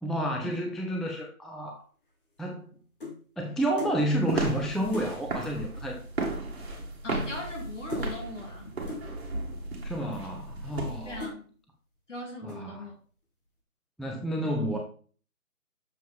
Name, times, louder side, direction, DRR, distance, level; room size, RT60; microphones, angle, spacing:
voice 1, 0.0-1.8 2.4-2.8 3.4-6.0 9.8-11.3 12.4-12.9 14.0-14.8, right 1 dB, ahead, 1 dB, 0.4 m, -30 dB
sound 1, 2.1-3.2 3.8-4.0 4.4-4.5 4.9-5.2 6.1-6.2 6.4-6.7 6.9-7.6 7.9-8.1 8.9-9.1 9.8-9.9 10.5-10.8 11.2-11.4 11.9-12.2 12.5-12.8, left 3 dB, 35° left, 1.7 m, -41 dB
sound 2, 4.1-11.2, right 2 dB, 45° right, 1.8 m, -34 dB
voice 2, 7.0-8.7 11.0-11.5 12.1-12.9 14.4-14.5, left 2 dB, 55° left, 0 dB, 2.5 m, -39 dB
7.1 x 4.7 x 3.6 m, 0.42 s
figure-of-eight pair, 165°, 44 cm